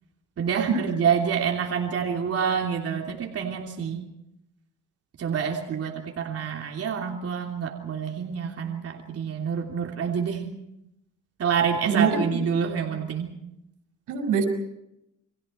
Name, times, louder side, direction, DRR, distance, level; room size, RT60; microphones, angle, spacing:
voice 1, 0.4-4.0 5.2-10.5 11.4-13.3, right 7 dB, 50° right, 1 dB, 3.2 m, -27 dB
voice 2, 11.8-12.4 14.1-14.4, right 6 dB, 90° right, 5 dB, 6.0 m, -23 dB
29.5 x 24.0 x 4.5 m, 0.83 s
cardioid pair, 90°, 30 cm